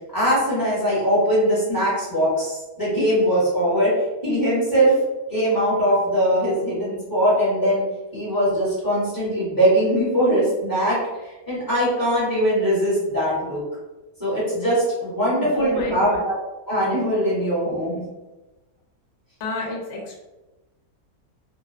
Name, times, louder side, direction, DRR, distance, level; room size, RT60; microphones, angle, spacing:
voice 1, 0.1-3.9 4.2-5.0 5.3-7.8 8.1-11.0 11.2-13.6 14.2-16.3 16.7-18.0, equal, 15° left, -9 dB, 0.9 m, -21 dB
voice 2, 15.4-16.2 19.4-20.1, left 2 dB, 55° left, -2 dB, 0.8 m, -30 dB
2.6 x 2.0 x 2.4 m, 1.1 s
omnidirectional pair, 1.6 m